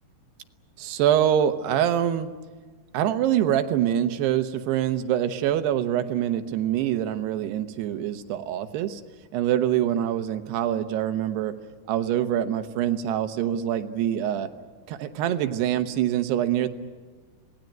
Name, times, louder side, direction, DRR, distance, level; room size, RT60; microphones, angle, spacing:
voice 1, 0.8-2.3 2.9-9.0 9.3-11.5 11.9-14.5 14.9-16.7, right 11 dB, 85° right, 9 dB, 3.1 m, -25 dB
26.5 x 19.0 x 9.2 m, 1.4 s
omnidirectional pair, 4.6 m